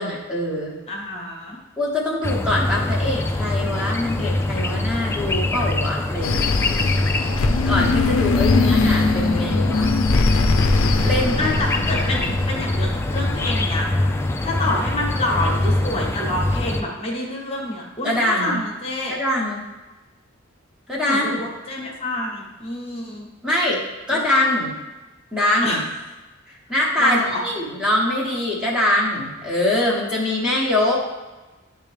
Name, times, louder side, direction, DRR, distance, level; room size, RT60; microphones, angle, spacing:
voice 1, 0.0-0.8 1.8-6.6 7.6-10.0 11.0-11.6 11.9-12.3 18.0-18.6 19.1-19.6 20.9-21.4 23.4-23.8 24.1-24.7 25.3-25.8 26.5-31.0, left 1 dB, 5° right, -5 dB, 1.0 m, -23 dB
voice 2, 0.9-1.6 11.4-13.9 14.4-19.2 21.0-23.3 24.1-24.2 25.6-25.8 27.0-27.4, left 2 dB, 30° left, -2 dB, 1.1 m, -27 dB
sound 1, 2.2-16.8, left 1 dB, 10° left, 0.3 m, -24 dB
sound 2, 6.2-14.1, left 3 dB, 80° left, 0.5 m, -22 dB
9.7 x 3.5 x 3.3 m, 1.2 s
head